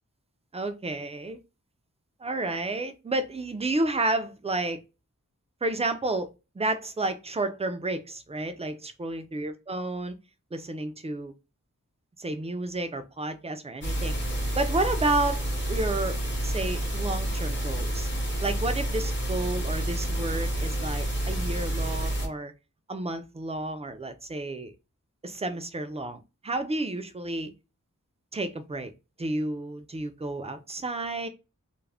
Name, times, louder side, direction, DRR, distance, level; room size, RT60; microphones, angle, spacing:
voice 1, 0.5-1.4 2.2-4.8 5.6-6.3 6.6-10.2 10.5-11.3 12.2-14.2 14.6-16.2 16.4-18.1 18.4-22.5 22.9-24.7 25.2-27.5 28.3-28.9 29.2-31.3, right 2 dB, 20° right, 0.4 m, -31 dB
sound 1, 13.8-22.3, right 1 dB, 40° left, 0.8 m, -29 dB
2.3 x 2.0 x 3.3 m
wide cardioid pair, 65°, 31 cm